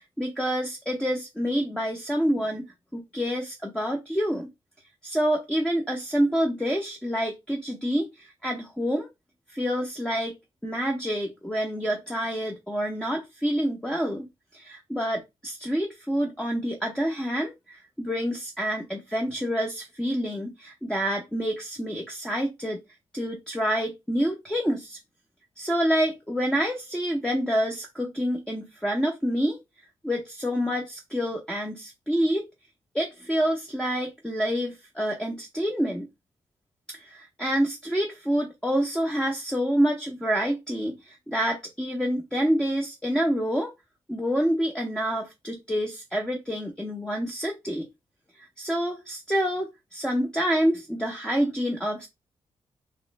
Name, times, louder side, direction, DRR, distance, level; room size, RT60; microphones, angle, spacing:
voice 1, 0.2-4.5 5.0-9.1 9.5-10.4 10.6-14.3 14.5-22.8 23.1-25.0 25.6-29.6 30.0-32.4 32.9-36.1 36.9-43.7 44.1-47.8 48.6-52.1, equal, 5° left, 0.7 m, -27 dB
3.1 x 3.0 x 3.1 m
cardioid pair, 110°, 11 cm